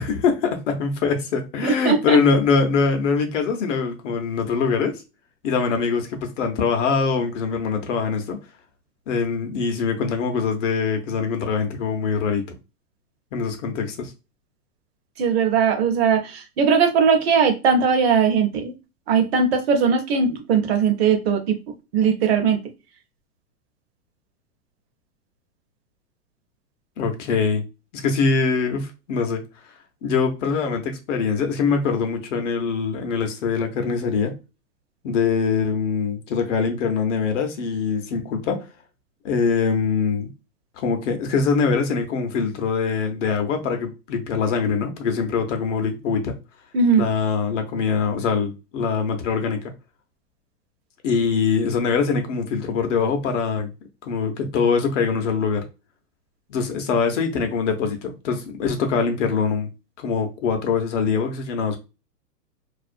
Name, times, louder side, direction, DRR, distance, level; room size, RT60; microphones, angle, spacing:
voice 1, 0.0-5.0 5.4-8.4 9.1-12.6 13.3-14.1 27.0-27.6 27.9-29.4 30.0-34.4 35.0-38.7 39.2-40.3 40.8-46.4 47.0-49.7 51.0-53.7 54.0-55.6 56.5-59.7 60.0-61.8, left 5 dB, 50° left, 0.6 m, -23 dB
voice 2, 1.6-2.2 15.2-18.7 19.1-21.5 21.9-22.6 46.7-47.1, right 6 dB, 40° right, 0.6 m, -19 dB
2.4 x 2.0 x 2.5 m
hypercardioid pair, 140°, 47 cm